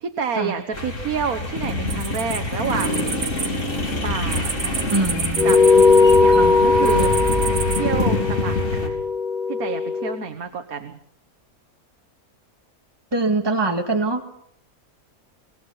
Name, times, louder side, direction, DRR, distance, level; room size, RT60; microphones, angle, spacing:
voice 1, 0.0-3.4 4.0-4.8 5.4-5.6 6.0-7.2 7.7-9.0 9.5-11.0, right 6 dB, 75° right, 7 dB, 1.8 m, -29 dB
sound 1, 0.7-8.9, left 2 dB, 55° left, 3.8 m, -26 dB
sound 2, 1.9-3.5 3.7-6.3 6.8-7.8, right 6 dB, 50° right, 1.4 m, -29 dB
voice 2, 4.9-5.6 6.3-6.5 13.1-14.3, right 2 dB, 15° right, 4 dB, 2.0 m, -23 dB
sound 3, 5.4-10.2, left 4 dB, 35° left, 0.9 m, -18 dB
25.0 x 20.5 x 5.6 m, 0.69 s
omnidirectional pair, 1.5 m